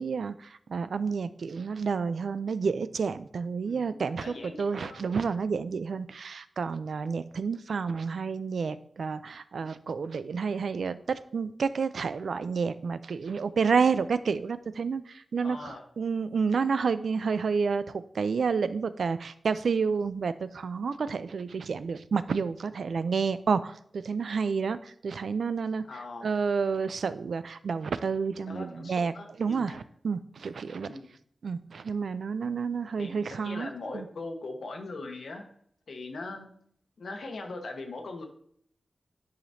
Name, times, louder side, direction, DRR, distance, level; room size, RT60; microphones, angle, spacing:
voice 1, 0.0-25.8 26.2-29.1 29.4-31.0 31.4-34.1, right 5 dB, 85° right, 13 dB, 0.3 m, -30 dB
voice 2, 4.2-5.1 15.4-15.8 21.1-21.2 25.8-26.3 28.4-29.8 30.8-31.1 33.0-35.4 35.9-36.5 37.0-38.3, left 3 dB, 85° left, 3 dB, 1.1 m, -40 dB
10.5 x 5.0 x 2.7 m, 0.65 s
wide cardioid pair, 110°, 0 cm